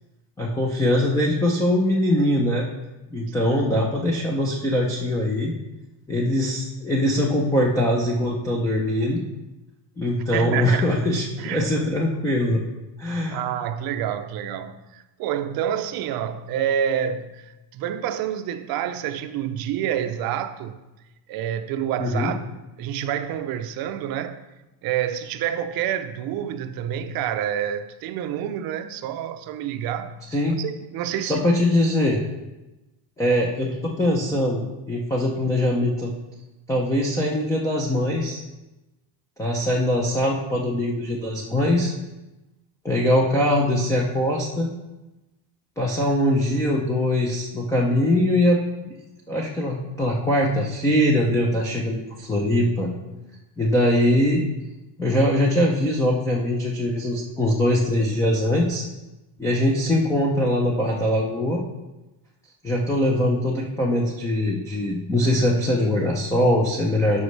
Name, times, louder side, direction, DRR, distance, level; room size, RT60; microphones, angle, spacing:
voice 1, 0.4-2.7 3.1-5.5 6.1-9.2 10.0-12.6 13.0-13.4 22.0-22.3 30.3-30.6 31.2-32.2 33.2-36.1 36.7-38.4 39.4-41.9 42.8-44.7 45.8-48.6 48.8-48.9 49.3-52.9 53.6-54.4 55.0-58.8 59.4-61.6 62.6-67.2, left 1 dB, 5° left, 0.5 m, -22 dB
voice 2, 3.5-3.9 10.2-11.1 11.4-11.9 13.0-20.8 21.3-22.4 22.8-24.4 24.8-30.2 30.6-31.5, right 9 dB, 50° right, 0.6 m, -28 dB
13.0 x 5.5 x 3.2 m
cardioid pair, 160°, 48 cm